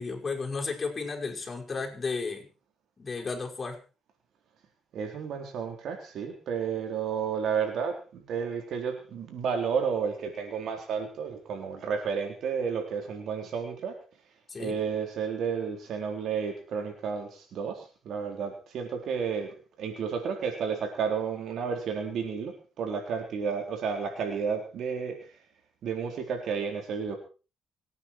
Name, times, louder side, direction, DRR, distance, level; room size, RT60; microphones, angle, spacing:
voice 1, 0.0-2.5 3.0-3.8 14.5-14.8, left 4 dB, 35° left, 1 dB, 5.5 m, -33 dB
voice 2, 4.9-14.0 14.6-25.3 25.8-27.2, right 6 dB, 70° right, 4 dB, 4.0 m, -32 dB
25.5 x 9.6 x 4.6 m, 0.35 s
cardioid pair, 90°, 0 cm